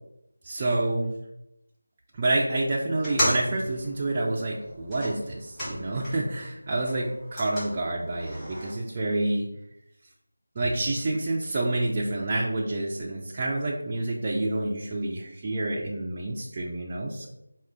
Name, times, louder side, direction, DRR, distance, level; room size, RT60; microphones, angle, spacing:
voice 1, 0.4-1.1 2.1-9.5 10.6-17.3, right 2 dB, 25° right, -3 dB, 0.4 m, -28 dB
sound 1, 2.9-6.4 6.7-8.7, equal, 10° left, 1.1 m, -34 dB
4.6 x 2.3 x 3.6 m, 0.83 s
figure-of-eight pair, 170°, 0 cm